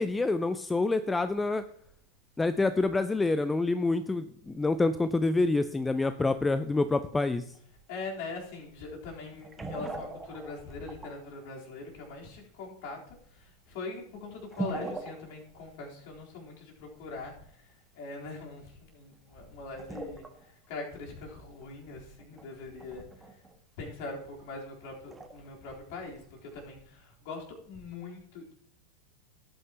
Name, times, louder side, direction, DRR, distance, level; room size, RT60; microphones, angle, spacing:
voice 1, 0.0-1.6 2.4-7.4, left 3 dB, 10° left, 12 dB, 0.5 m, -27 dB
sound 1, 7.5-7.6 9.3-11.6 12.3-12.4 12.8-12.9 13.7-13.8 14.4-15.6 15.9-16.0 17.4-17.5 19.1-19.3 19.7-20.5 20.8-20.9 21.2-21.3 21.6-23.6 24.0-24.3 25.1-25.5 26.2-26.3 26.5-26.6, right 3 dB, 10° right, 1.4 m, -41 dB
voice 2, 7.9-17.3 18.0-20.2 20.7-23.0 23.8-28.5, left 3 dB, 45° left, -2 dB, 3.8 m, -42 dB
17.5 x 9.2 x 3.0 m, 0.63 s
figure-of-eight pair, 90°, 0 cm